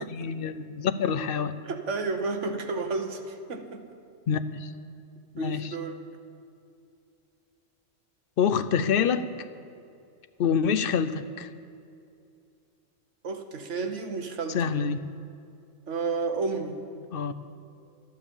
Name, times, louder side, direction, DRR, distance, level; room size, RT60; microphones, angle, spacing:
voice 1, 0.0-1.6 4.3-4.7 5.3-5.7 8.4-9.3 10.4-11.5 14.5-15.1 17.1-17.4, left 7 dB, 60° left, 11 dB, 0.6 m, -26 dB
voice 2, 1.7-3.8 5.4-6.0 13.2-14.7 15.9-16.8, right 4 dB, 70° right, 6 dB, 1.4 m, -31 dB
12.0 x 11.5 x 7.1 m, 2.5 s
omnidirectional pair, 1.3 m